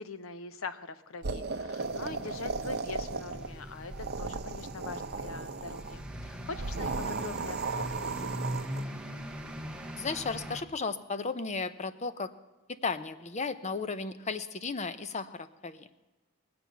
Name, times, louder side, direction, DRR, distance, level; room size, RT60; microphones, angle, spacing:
voice 1, 0.0-8.7, left 4 dB, 75° left, 12 dB, 0.8 m, -43 dB
sound 1, 1.2-3.5 3.8-6.0 6.5-8.8, right 4 dB, 50° right, 0.7 m, -36 dB
sound 2, 1.8-10.6, equal, 5° right, 1.0 m, -41 dB
voice 2, 6.7-7.1 10.0-12.3 12.8-15.9, left 4 dB, 35° left, 12 dB, 0.7 m, -35 dB
20.5 x 7.8 x 7.0 m, 1.1 s
head